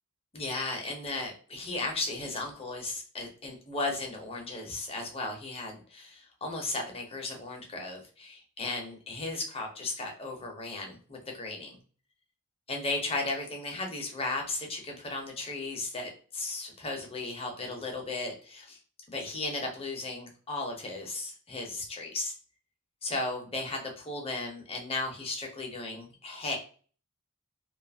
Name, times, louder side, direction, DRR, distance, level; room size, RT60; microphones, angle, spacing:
voice 1, 0.3-11.8 12.7-18.8 19.1-22.3 23.0-26.6, left 2 dB, 25° left, 1 dB, 0.7 m, -35 dB
2.6 x 2.4 x 2.6 m, 0.41 s
head